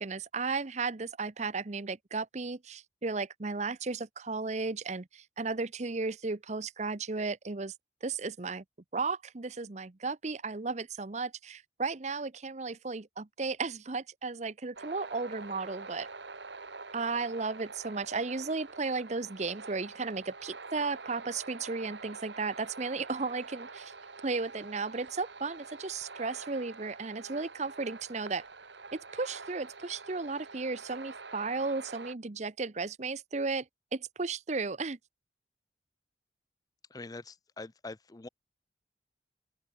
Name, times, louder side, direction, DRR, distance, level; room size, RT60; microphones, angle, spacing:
voice 1, 0.0-7.7 8.0-8.6 8.9-16.1 16.9-23.9 24.2-28.5 28.9-33.7 33.9-35.0, right 4 dB, 40° right, 0.8 m, -34 dB
sound 1, 14.8-32.1, right 4 dB, 75° right, 2.8 m, -46 dB
voice 2, 36.9-38.3, left 3 dB, 20° left, 0.5 m, -44 dB
open air
head